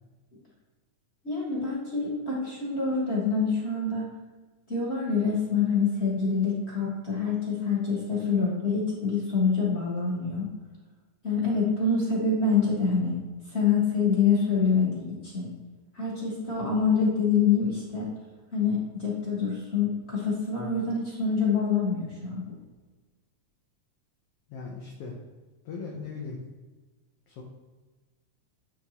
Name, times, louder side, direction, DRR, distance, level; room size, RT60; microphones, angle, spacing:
voice 1, 1.2-4.1 4.7-10.5 11.2-13.1 13.5-15.5 15.9-18.1 18.5-22.6, left 5 dB, 40° left, -6 dB, 0.9 m, -26 dB
voice 2, 24.5-25.2 25.6-26.4 27.3-27.4, left 4 dB, 70° left, -1 dB, 1.5 m, -38 dB
10.5 x 3.6 x 2.9 m, 1.3 s
omnidirectional pair, 3.5 m